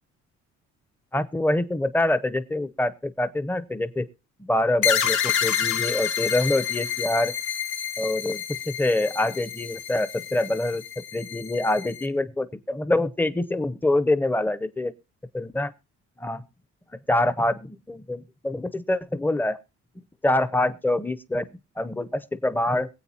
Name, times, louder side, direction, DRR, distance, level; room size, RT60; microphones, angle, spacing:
voice 1, 1.1-4.1 4.4-7.3 8.0-14.9 15.3-15.7 16.2-16.4 17.1-19.6 20.2-21.5 21.8-22.9, left 1 dB, 5° left, 0.7 m, -25 dB
sound 1, 4.8-12.1, left 8 dB, 85° left, 1.4 m, -28 dB
22.5 x 8.1 x 2.8 m
cardioid pair, 90°, 30 cm